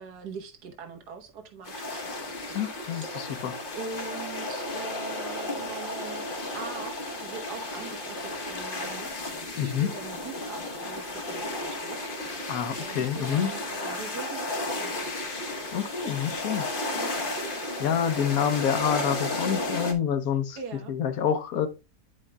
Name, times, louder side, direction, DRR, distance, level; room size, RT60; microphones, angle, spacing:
voice 1, 0.0-2.1 3.1-3.5 3.7-6.2 6.5-9.2 9.6-12.4 12.7-15.0 16.9-17.3 20.6-20.9, right 5 dB, 75° right, 1.7 m, -42 dB
sound 1, 1.6-19.9, left 2 dB, 40° left, 1.0 m, -33 dB
voice 2, 2.5-3.5 9.6-9.9 12.5-13.5 15.7-16.8 17.8-20.6 20.9-21.7, left 8 dB, 65° left, 1.2 m, -27 dB
9.8 x 5.2 x 2.2 m
omnidirectional pair, 1.7 m